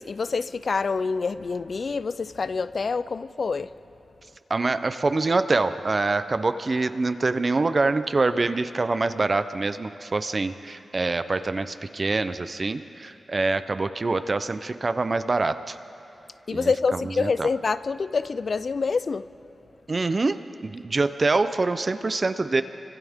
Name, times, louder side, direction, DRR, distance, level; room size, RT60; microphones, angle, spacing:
voice 1, 0.1-3.7 16.5-19.2, left 4 dB, 55° left, 0.5 m, -26 dB
voice 2, 4.5-15.8 16.5-17.5 19.9-22.6, right 3 dB, 40° right, 0.6 m, -25 dB
29.5 x 25.0 x 3.6 m
wide cardioid pair, 120°, 0 cm